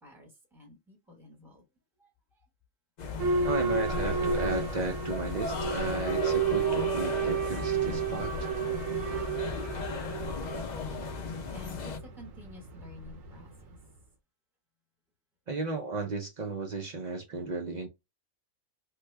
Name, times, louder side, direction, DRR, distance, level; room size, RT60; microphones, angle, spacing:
voice 1, 0.0-1.6 2.0-2.5 10.1-13.8, left 3 dB, ahead, 0.9 m, -51 dB
sound 1, 3.0-12.0, left 5 dB, 55° left, 0.5 m, -36 dB
Boat Water vehicle / Alarm, 3.2-13.8, right 5 dB, 80° right, 1.1 m, -32 dB
voice 2, 3.4-8.5 15.5-17.9, right 3 dB, 60° right, 0.4 m, -34 dB
3.1 x 2.2 x 3.2 m
omnidirectional pair, 1.4 m